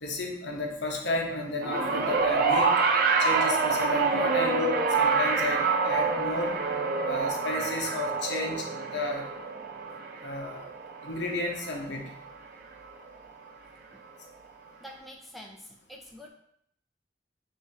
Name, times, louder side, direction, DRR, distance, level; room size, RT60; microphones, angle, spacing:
voice 1, 0.0-2.7 3.2-6.5 7.0-8.6 8.9-9.2 10.2-10.6 11.0-12.1, left 2 dB, 75° left, 0 dB, 0.9 m, -32 dB
sound 1, 1.6-12.1 13.1-13.2, right 4 dB, 55° right, 0.5 m, -27 dB
voice 2, 14.8-16.3, equal, ahead, -1 dB, 0.4 m, -46 dB
6.4 x 2.8 x 2.8 m, 0.70 s
head